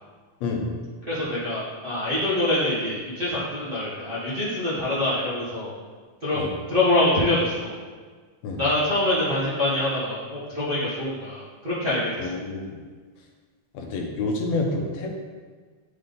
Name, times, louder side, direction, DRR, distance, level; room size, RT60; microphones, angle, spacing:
voice 1, 0.4-0.8 6.3-6.5 8.4-8.6 12.2-12.8 13.7-15.1, left 3 dB, 70° left, 1 dB, 1.8 m, -28 dB
voice 2, 1.1-5.7 6.2-7.7 8.5-12.2, left 1 dB, 65° right, -11 dB, 0.5 m, -25 dB
9.5 x 3.7 x 3.9 m, 1.5 s
omnidirectional pair, 3.8 m